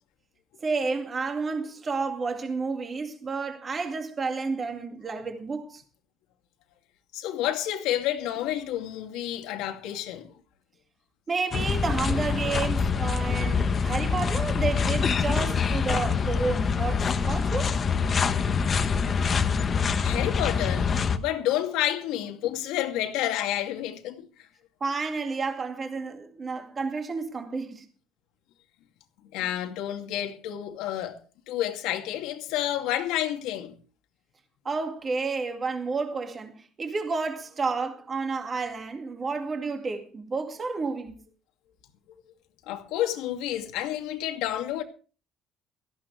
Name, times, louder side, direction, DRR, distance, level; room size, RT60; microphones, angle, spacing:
voice 1, 0.6-5.8 11.3-17.8 24.8-27.8 34.6-41.2, right 4 dB, 25° right, 2.1 m, -31 dB
voice 2, 7.1-10.3 20.0-24.3 29.3-31.2 31.5-33.7 42.7-44.8, left 12 dB, 85° left, 2.4 m, -29 dB
sound 1, 11.5-21.2, left 5 dB, 30° left, 1.1 m, -25 dB
17.5 x 14.5 x 3.3 m
cardioid pair, 155°, 0 cm